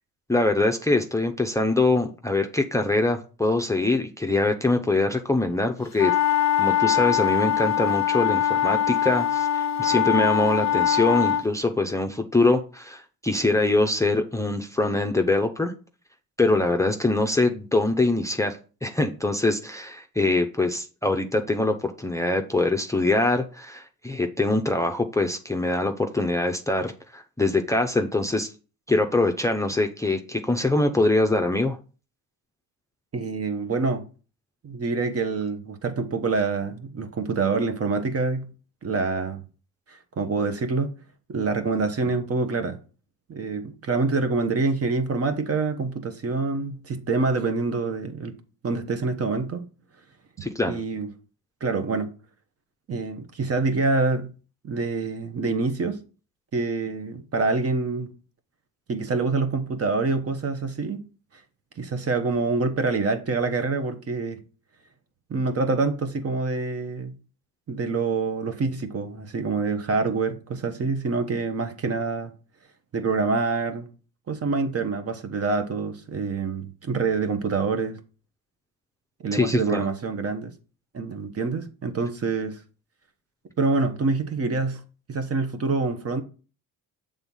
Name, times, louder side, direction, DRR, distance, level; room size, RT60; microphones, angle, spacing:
voice 1, 0.3-6.2 6.6-15.7 16.4-28.5 28.9-31.8 50.4-50.8 79.3-79.9, left 2 dB, 10° left, 0.6 m, -23 dB
sound 1, 6.0-11.5, left 10 dB, 50° left, 0.7 m, -22 dB
voice 2, 33.1-34.0 34.6-38.5 38.8-39.4 39.9-41.0 41.3-42.8 43.3-48.3 48.6-49.6 50.6-51.1 51.6-52.1 52.9-54.3 54.6-56.0 56.5-58.1 58.9-61.1 61.8-64.4 65.3-67.1 67.7-72.3 72.9-73.9 74.3-78.0 79.2-80.5 80.9-82.6 83.6-84.8 85.1-86.2, right 4 dB, 40° right, 1.1 m, -26 dB
6.9 x 3.6 x 5.5 m
supercardioid pair, 70°, 36 cm